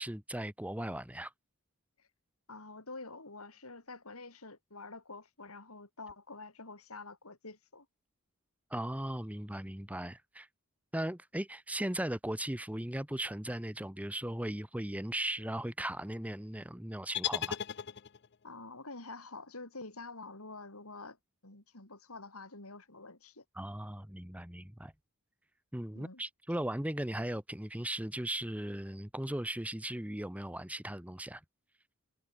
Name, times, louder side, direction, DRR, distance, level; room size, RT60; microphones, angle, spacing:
voice 1, 0.0-1.3 8.7-10.5 10.9-17.6 23.6-24.9 25.7-31.4, right 1 dB, 5° right, 1.2 m, -37 dB
voice 2, 2.5-7.9 18.4-21.2 21.4-23.4 25.9-26.2, left 3 dB, 75° left, 4.8 m, -47 dB
sound 1, 17.1-18.4, left 9 dB, 50° left, 0.6 m, -36 dB
head